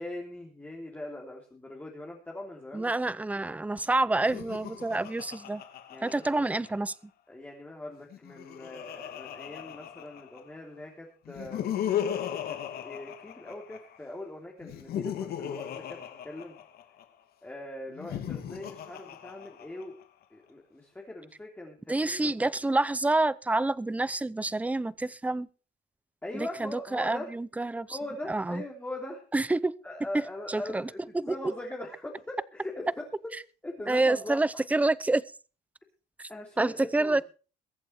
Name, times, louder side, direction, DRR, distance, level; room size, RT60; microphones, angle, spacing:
voice 1, 0.0-3.1 4.3-4.4 5.9-6.5 7.3-12.0 12.5-16.0 16.2-16.6 17.4-20.0 20.3-22.5 26.2-27.3 27.9-29.2 29.8-33.1 33.6-34.4 36.3-37.2, left 1 dB, 10° left, 3.3 m, -41 dB
voice 2, 2.7-5.6 6.0-6.9 21.9-25.5 26.3-28.0 28.3-28.6 29.3-29.7 30.5-31.3 33.9-35.2 36.2-36.3 36.6-37.2, right 2 dB, 10° right, 0.6 m, -28 dB
Laughter, 4.2-6.9 8.0-10.6 11.3-14.0 14.6-17.0 17.9-20.0, left 10 dB, 65° left, 2.6 m, -37 dB
22.5 x 8.3 x 4.3 m
cardioid pair, 110°, 17 cm